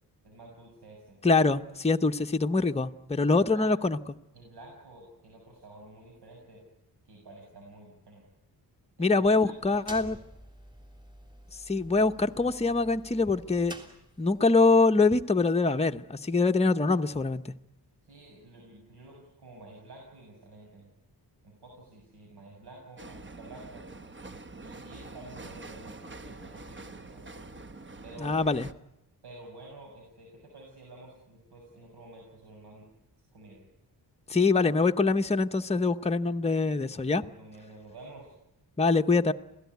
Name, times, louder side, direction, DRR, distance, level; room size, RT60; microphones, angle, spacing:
voice 1, 0.2-1.2 3.1-3.7 4.3-6.6 7.1-8.2 9.0-10.0 18.0-20.9 21.4-23.8 24.6-27.3 28.0-28.4 29.2-32.9 33.3-33.6 36.7-38.3, right 2 dB, 75° right, 0 dB, 7.1 m, -50 dB
voice 2, 1.2-4.0 9.0-10.2 11.7-13.7 14.2-17.5 28.2-28.7 34.3-37.2 38.8-39.3, left 3 dB, 15° left, 6 dB, 0.8 m, -24 dB
sound 1, 9.4-14.5, equal, 10° right, 3.4 m, -49 dB
sound 2, 23.0-28.7, right 2 dB, 30° right, 1.0 m, -45 dB
27.5 x 17.5 x 9.4 m, 0.88 s
wide cardioid pair, 135°, 40 cm